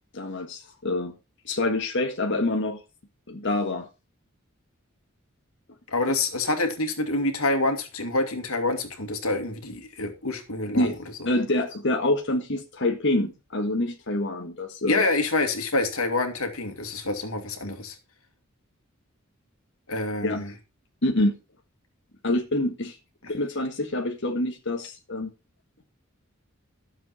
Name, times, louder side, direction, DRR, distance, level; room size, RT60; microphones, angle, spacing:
voice 1, 0.1-1.1 1.5-2.8 3.3-3.9 10.7-11.0 11.3-15.1 20.2-20.4 21.0-21.3 22.2-23.0 23.3-25.3, left 1 dB, 60° left, 1.8 m, -26 dB
voice 2, 5.9-10.9 14.9-18.0 19.9-20.5, left 2 dB, 90° left, 2.4 m, -27 dB
13.0 x 7.5 x 4.4 m
head